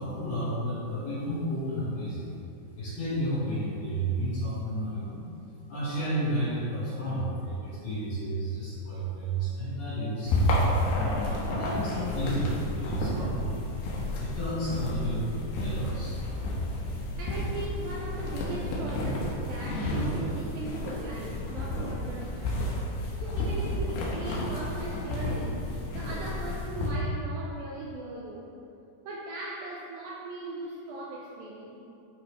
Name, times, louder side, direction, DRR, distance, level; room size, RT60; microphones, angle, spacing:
voice 1, 0.0-2.4 2.7-5.3 5.7-10.4 10.9-13.5 14.2-16.2, right 1 dB, 55° left, -10 dB, 2.1 m, -31 dB
Footsteps Studio Walking, 10.2-26.9, left 1 dB, 75° left, 3.0 m, -31 dB
voice 2, 17.2-22.8 23.2-25.7 25.9-28.5 29.0-31.8, right 2 dB, 80° right, -3 dB, 2.1 m, -39 dB
11.0 x 4.7 x 3.2 m, 2.7 s
omnidirectional pair, 4.8 m